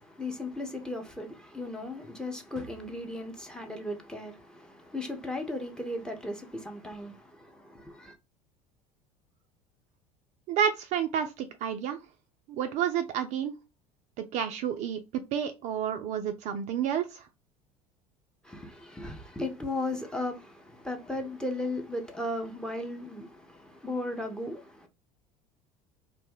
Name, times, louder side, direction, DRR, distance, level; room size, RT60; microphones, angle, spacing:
voice 1, 0.0-8.1 18.5-24.9, left 1 dB, 5° left, 0.6 m, -36 dB
voice 2, 10.5-12.0 12.5-13.5 14.3-15.0 15.3-17.2, right 8 dB, 40° right, 0.4 m, -30 dB
2.5 x 2.1 x 3.4 m
figure-of-eight pair, 70°, 19 cm